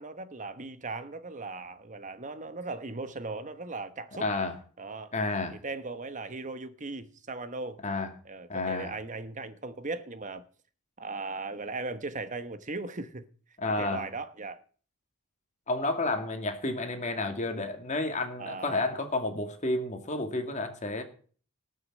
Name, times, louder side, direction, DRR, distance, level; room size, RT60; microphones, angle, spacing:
voice 1, 0.0-4.3 4.8-5.1 5.5-7.8 8.2-10.4 11.0-13.2 13.8-14.6 18.4-18.9, right 3 dB, 35° right, 1.1 m, -38 dB
voice 2, 4.2-4.6 5.1-5.6 7.8-8.1 8.5-8.9 13.6-14.1 15.7-21.0, left 2 dB, 35° left, 2.1 m, -31 dB
19.0 x 6.6 x 7.6 m
head